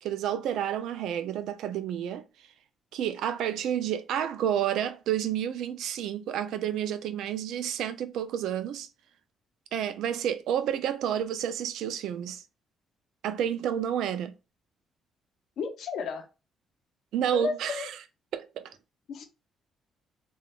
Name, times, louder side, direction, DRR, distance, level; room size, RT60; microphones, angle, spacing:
voice 1, 0.0-2.3 2.9-8.9 9.7-12.4 13.2-14.3 17.1-17.9 18.3-18.8, right 10 dB, 85° right, 0.3 m, -30 dB
voice 2, 15.6-16.3 17.3-17.9 19.1-19.2, left 5 dB, 70° left, 0.6 m, -33 dB
3.3 x 2.3 x 2.3 m
cardioid pair, 90°, 0 cm